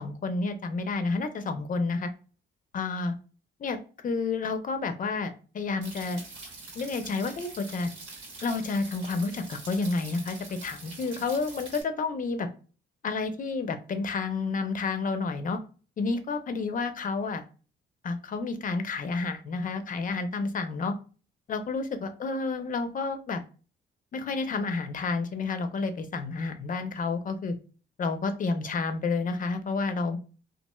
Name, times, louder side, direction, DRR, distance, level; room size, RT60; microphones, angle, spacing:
voice 1, 0.0-2.1 2.7-3.1 3.6-6.2 6.7-7.9 8.4-12.5 13.0-15.6 16.0-17.4 18.0-20.9 21.5-23.4 24.1-27.5 28.0-30.2, left 4 dB, 45° left, 8 dB, 0.5 m, -30 dB
sound 1, 5.8-11.8, right 3 dB, 85° right, 1.2 m, -44 dB
3.0 x 2.4 x 2.2 m, 0.36 s
cardioid pair, 90°, 20 cm